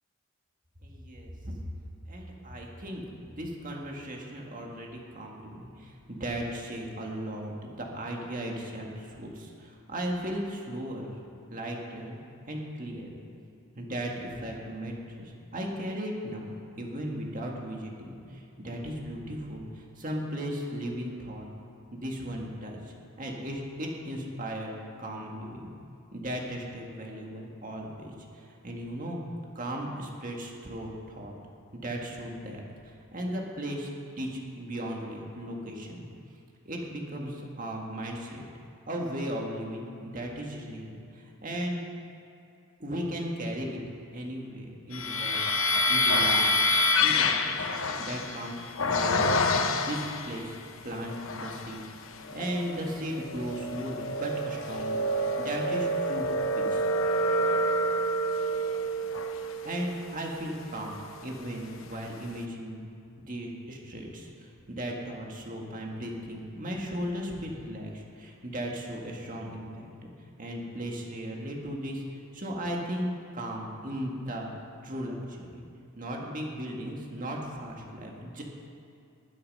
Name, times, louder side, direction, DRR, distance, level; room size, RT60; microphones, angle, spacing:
voice 1, 0.8-1.6 2.1-11.1 11.5-12.2 12.5-13.1 13.8-21.5 21.9-25.7 26.1-29.2 29.6-31.3 31.7-33.9 34.2-36.1 36.7-38.4 38.9-41.8 42.8-43.8 44.1-45.4 45.9-46.6 47.0-50.6 50.8-56.3 56.6-56.9 59.6-62.8 63.2-70.1 70.4-74.5 74.8-75.6 76.0-78.4, equal, 40° right, 0 dB, 1.9 m, -36 dB
sound 1, 44.9-50.4 51.0-51.8 52.2-61.4, left 1 dB, 65° left, 0.9 m, -28 dB
20.0 x 8.5 x 5.5 m, 2.6 s
head